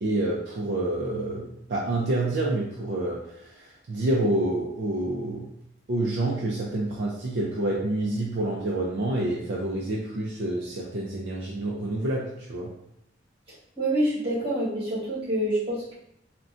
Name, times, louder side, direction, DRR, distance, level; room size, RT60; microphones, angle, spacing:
voice 1, 0.0-5.5 5.9-12.7, right 1 dB, 60° right, -3 dB, 0.4 m, -28 dB
voice 2, 13.8-15.9, right 1 dB, 30° right, -9 dB, 1.3 m, -26 dB
3.7 x 2.2 x 2.4 m, 0.76 s
head